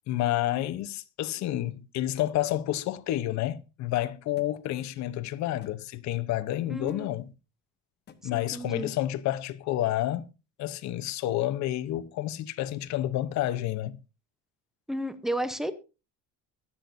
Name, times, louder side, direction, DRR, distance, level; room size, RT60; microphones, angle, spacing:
voice 1, 0.1-7.3 8.2-10.3 10.6-14.0, left 14 dB, 55° left, 0.8 m, -29 dB
sound 1, 4.4-4.5 5.6-5.8 6.9-7.1 8.1-8.2, left 7 dB, 30° left, 1.1 m, -51 dB
voice 2, 6.7-7.1 8.3-8.9 14.9-15.7, right 1 dB, ahead, 0.7 m, -32 dB
23.5 x 8.5 x 2.6 m
cardioid pair, 175°, 34 cm